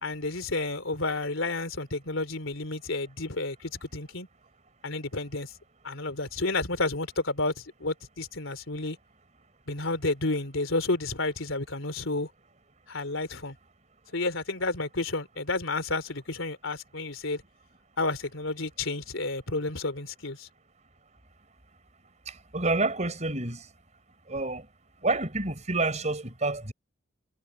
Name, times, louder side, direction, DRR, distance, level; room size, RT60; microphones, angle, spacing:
voice 1, 0.0-4.3 4.8-5.5 5.8-9.0 9.7-12.3 12.9-13.6 14.1-17.4 18.0-20.5, left 2 dB, 85° left, 3.4 m, -31 dB
voice 2, 22.3-23.7 24.3-24.7 25.0-26.7, right 2 dB, 35° right, 4.4 m, -28 dB
head